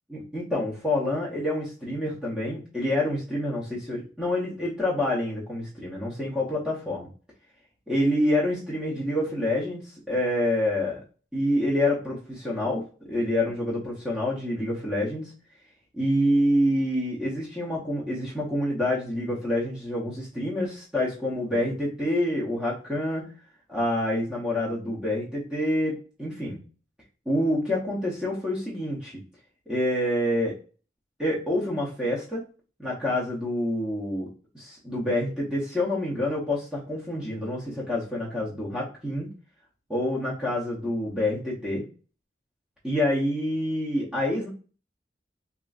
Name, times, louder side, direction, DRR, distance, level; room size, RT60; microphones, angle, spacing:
voice 1, 0.1-7.1 7.9-11.0 11.3-12.8 13.1-15.3 15.9-23.3 23.7-26.6 27.3-29.1 29.7-30.5 31.2-32.4 32.8-34.3 34.5-39.3 39.9-41.8 42.8-44.5, left 1 dB, 5° right, -6 dB, 0.6 m, -27 dB
2.9 x 2.5 x 2.3 m, 0.37 s
head